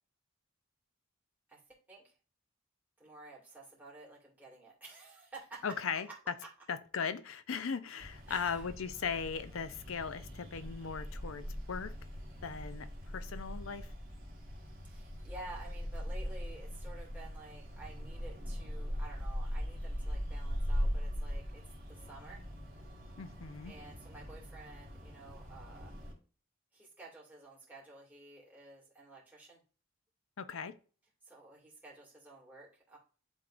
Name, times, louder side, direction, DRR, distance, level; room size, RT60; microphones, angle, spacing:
voice 1, 3.0-5.6 5.9-6.2 6.4-6.5 8.3-8.6 14.8-21.6 21.9-22.4 23.6-25.9 26.7-29.6 31.2-33.0, right 2 dB, 10° right, 2.4 m, -52 dB
voice 2, 5.6-6.1 6.7-11.9 12.4-12.9 13.1-13.9 23.2-23.7 30.4-30.7, left 6 dB, 85° left, 0.6 m, -38 dB
sound 1, 8.0-26.1, equal, 45° right, 2.5 m, -40 dB
10.5 x 3.7 x 2.5 m
head